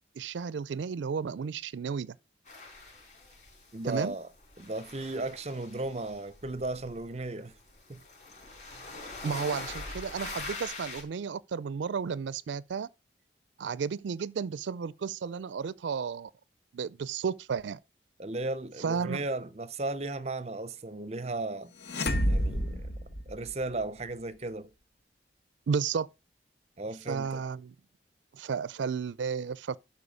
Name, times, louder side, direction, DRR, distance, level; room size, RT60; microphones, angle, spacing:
voice 1, 0.2-2.2 3.8-4.1 9.2-12.9 13.6-16.3 16.7-17.8 18.8-19.2 25.7-26.1 27.1-27.7 28.3-29.8, right 6 dB, 80° right, 0.4 m, -33 dB
sound 1, 2.5-4.1 4.3-11.0, left 3 dB, 40° left, 4.3 m, -43 dB
voice 2, 3.7-4.3 4.6-7.5 7.9-8.0 18.2-21.7 22.3-22.9 23.3-24.7 26.8-27.4, right 2 dB, 35° right, 0.6 m, -35 dB
sound 2, 21.8-23.8, equal, 60° left, 1.1 m, -29 dB
12.0 x 4.7 x 4.9 m
head